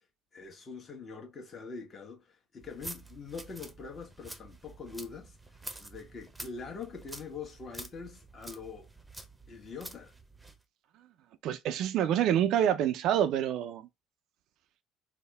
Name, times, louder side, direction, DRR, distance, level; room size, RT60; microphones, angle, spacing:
voice 1, 0.3-5.4 5.8-8.9 9.5-10.1, left 5 dB, 40° left, 1.1 m, -44 dB
sound 1, 2.6-10.6, right 2 dB, 15° right, 0.7 m, -48 dB
voice 2, 11.4-13.9, right 10 dB, 65° right, 0.3 m, -27 dB
3.5 x 2.0 x 3.2 m
hypercardioid pair, 60°, 0 cm